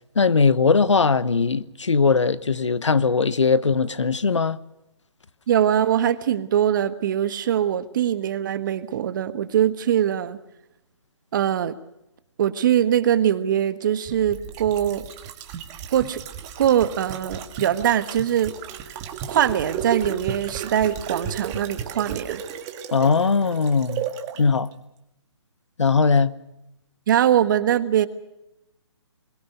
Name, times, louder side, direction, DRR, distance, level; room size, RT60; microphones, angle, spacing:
voice 1, 0.2-4.6 22.9-24.0 24.4-24.7 25.8-26.3, left 4 dB, 85° left, 1.1 m, -20 dB
voice 2, 5.5-10.4 11.3-11.8 12.4-15.0 15.9-16.2 16.6-18.5 19.3-22.4 27.1-28.1, right 10 dB, 45° right, 1.4 m, -22 dB
sound 1, 14.1-24.4 24.7-24.8, right 8 dB, 20° right, 1.9 m, -34 dB
23.0 x 21.5 x 6.7 m
hypercardioid pair, 150°, 15 cm